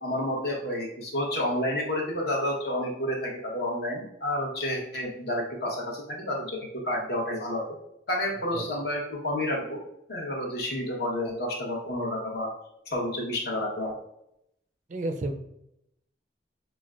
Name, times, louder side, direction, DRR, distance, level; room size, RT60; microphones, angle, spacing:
voice 1, 0.0-7.7 8.1-9.8 10.1-12.5 12.9-14.0, left 1 dB, 60° left, -1 dB, 1.0 m, -30 dB
voice 2, 14.9-15.3, right 2 dB, 40° right, 6 dB, 0.3 m, -30 dB
5.8 x 2.1 x 2.4 m, 0.78 s
head